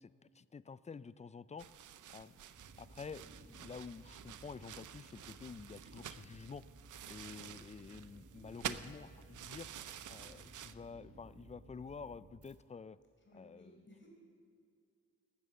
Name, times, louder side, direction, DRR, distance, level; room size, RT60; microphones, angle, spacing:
voice 1, 0.0-1.7 2.1-2.4 2.8-6.6 7.1-9.7 10.1-13.0 13.3-13.8, left 5 dB, 25° left, 18 dB, 0.4 m, -49 dB
sound 1, 1.6-10.7, right 10 dB, 80° right, 0.6 m, -49 dB
sound 2, 2.5-12.6, right 2 dB, 50° right, 1.5 m, -58 dB
voice 2, 13.2-14.1, left 1 dB, 40° left, -1 dB, 4.9 m, -60 dB
13.5 x 12.5 x 7.6 m, 2.4 s
cardioid pair, 80°, 30 cm